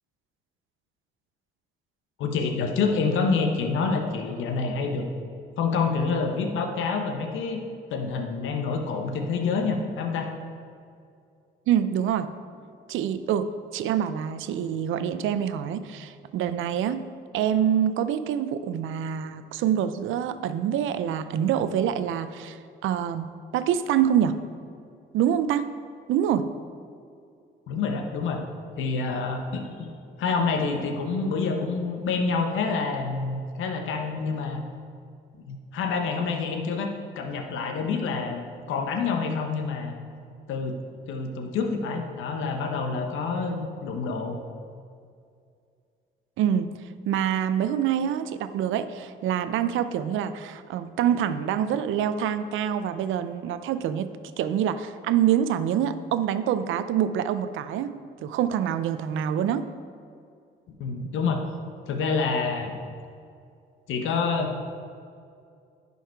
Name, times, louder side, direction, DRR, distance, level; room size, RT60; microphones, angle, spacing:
voice 1, 2.2-5.0 5.6-7.6 7.9-10.3 27.7-28.4 28.8-29.9 30.2-34.6 35.5-38.4 38.7-39.9 40.5-40.8 41.1-44.4 60.8-61.4 61.9-62.7 63.9-64.7, left 4 dB, 80° left, 5 dB, 0.9 m, -27 dB
voice 2, 11.7-12.3 12.9-17.0 17.3-23.2 23.5-24.4 25.1-25.7 26.1-26.5 46.4-46.7 47.1-57.9 58.2-59.7, right 9 dB, 85° right, 12 dB, 0.5 m, -26 dB
10.5 x 5.5 x 4.6 m, 2.4 s
cardioid pair, 90°, 20 cm